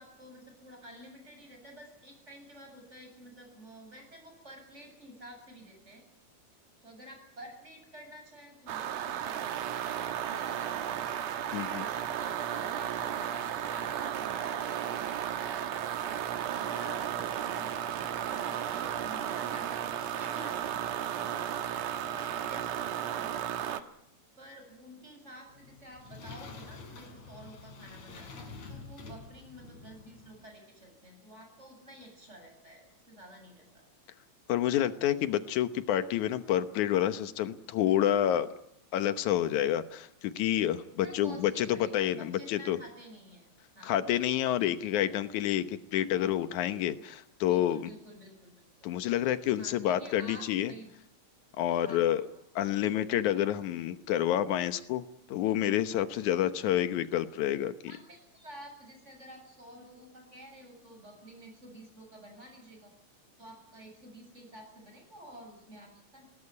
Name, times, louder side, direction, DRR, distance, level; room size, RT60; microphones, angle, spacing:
voice 1, 0.0-6.0 6.8-11.4 11.7-15.8 16.5-23.8 24.4-33.9 41.0-43.5 43.7-44.2 45.0-45.2 46.1-46.5 47.5-48.9 49.6-50.9 51.7-52.2 57.9-62.9 63.4-66.2, equal, 20° right, 3 dB, 7.8 m, -51 dB
sound 1, 8.7-23.8, right 10 dB, 70° right, 2.3 m, -34 dB
voice 2, 11.5-11.9 34.5-38.5 38.9-42.8 43.8-47.8 48.8-50.7 51.6-52.2 52.6-57.7, left 11 dB, 90° left, 11 dB, 2.5 m, -28 dB
sound 2, 25.5-30.5, left 4 dB, 70° left, 4.7 m, -47 dB
20.0 x 19.0 x 9.7 m, 0.78 s
omnidirectional pair, 3.3 m